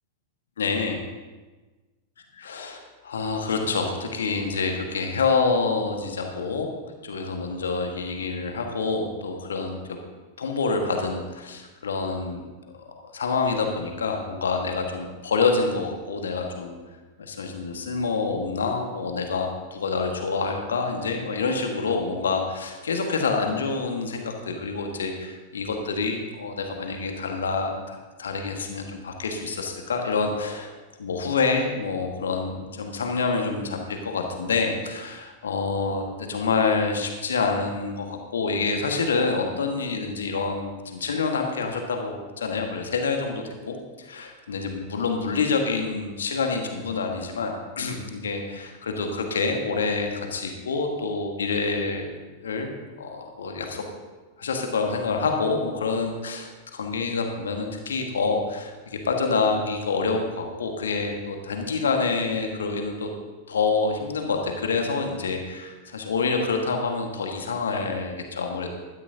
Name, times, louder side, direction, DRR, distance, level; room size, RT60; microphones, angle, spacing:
voice 1, 0.6-1.0 2.3-6.7 7.0-9.8 10.4-12.4 13.1-16.8 17.2-30.7 31.0-52.1 52.4-52.7 53.0-53.8 54.4-63.1 63.5-68.7, left 4 dB, 65° left, 3 dB, 1.6 m, -27 dB
16.5 x 12.0 x 2.8 m, 1.3 s
figure-of-eight pair, 90°, 0 cm